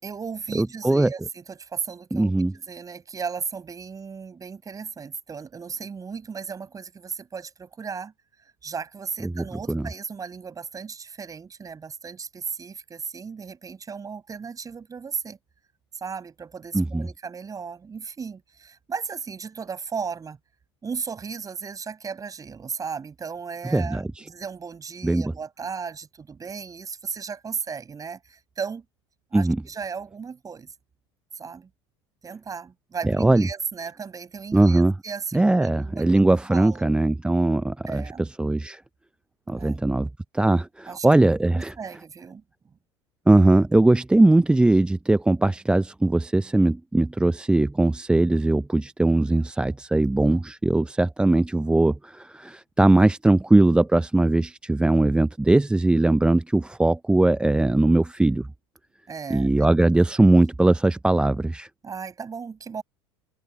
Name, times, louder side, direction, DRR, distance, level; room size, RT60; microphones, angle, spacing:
voice 1, 0.0-8.1 8.6-15.4 15.9-20.4 20.8-28.8 29.3-30.7 31.3-31.7 32.2-36.1 36.5-36.9 37.9-38.3 39.5-39.8 40.9-41.1 41.5-42.4 59.1-59.7 60.2-60.3 61.8-62.8, right 6 dB, 25° right, 6.1 m, -35 dB
voice 2, 0.6-1.1 2.1-2.5 9.2-9.8 16.7-17.1 23.7-24.3 25.0-25.3 29.3-29.6 33.0-33.5 34.5-34.9 35.3-38.8 39.5-41.7 43.3-58.5 59.3-61.7, right 2 dB, 5° right, 0.7 m, -20 dB
figure-of-eight pair, 75°, 15 cm